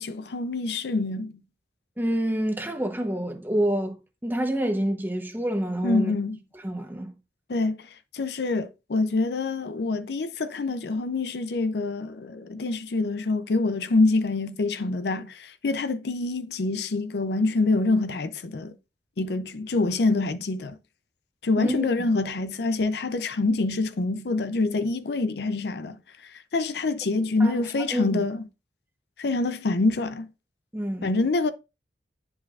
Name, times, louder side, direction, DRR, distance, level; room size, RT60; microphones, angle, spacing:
voice 1, 0.0-1.4 5.8-6.4 7.5-18.7 19.2-20.8 21.4-26.0 26.2-28.4 29.2-30.3 31.0-31.5, left 3 dB, 65° left, 0.5 m, -26 dB
voice 2, 2.0-6.1 6.6-7.1 21.6-21.9 27.4-27.6 27.9-28.2 30.7-31.1, right 1 dB, 10° right, 0.9 m, -27 dB
10.5 x 4.9 x 2.4 m
head